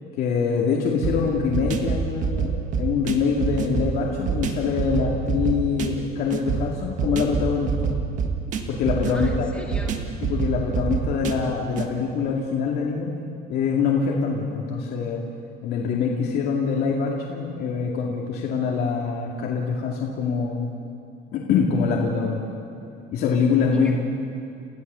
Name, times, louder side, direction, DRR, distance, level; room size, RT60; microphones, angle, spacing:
voice 1, 0.2-7.9 8.7-9.5 10.2-13.1 13.5-15.2 15.6-20.7 21.3-22.4 23.1-24.0, left 5 dB, 70° left, -2 dB, 2.4 m, -24 dB
sound 1, 1.0-11.9, right 6 dB, 50° right, 1.6 m, -27 dB
voice 2, 9.0-10.0 23.7-24.0, left 1 dB, 5° left, -1 dB, 2.7 m, -38 dB
29.5 x 15.0 x 7.0 m, 2.6 s
cardioid pair, 175°, 17 cm